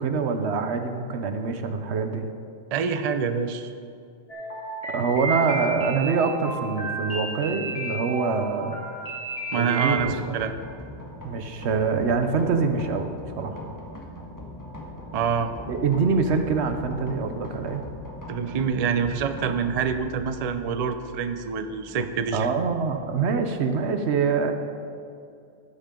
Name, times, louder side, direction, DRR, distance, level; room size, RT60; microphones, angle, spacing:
voice 1, 0.0-2.2 4.9-8.8 9.5-10.4 11.2-13.1 13.4-13.6 15.7-17.8 22.3-24.5, right 5 dB, 90° right, 7 dB, 1.1 m, -25 dB
voice 2, 2.7-3.7 9.5-10.5 15.1-15.5 18.3-22.5, right 6 dB, 45° right, 9 dB, 0.6 m, -26 dB
sound 1, 4.3-10.0, right 2 dB, 35° left, 2.2 m, -32 dB
sound 2, 9.9-23.8, left 1 dB, 15° left, 1.4 m, -41 dB
13.0 x 8.9 x 3.8 m, 2.5 s
omnidirectional pair, 1.1 m